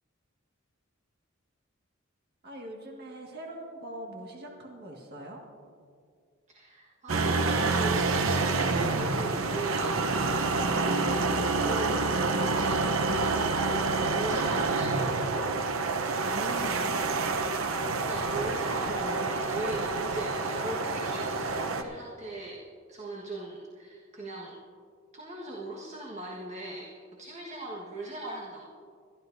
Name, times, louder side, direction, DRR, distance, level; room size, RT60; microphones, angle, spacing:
voice 1, 2.4-5.4 16.2-17.0, right 1 dB, 50° right, -1 dB, 1.8 m, -42 dB
voice 2, 6.5-10.0 10.5-13.5 14.0-15.6 17.8-22.6 22.9-24.6 25.1-26.9 27.2-28.6, right 1 dB, 35° right, -3 dB, 1.5 m, -39 dB
sound 1, 7.1-21.8, right 3 dB, 90° right, 0.8 m, -28 dB
22.0 x 13.0 x 2.7 m, 2.1 s
head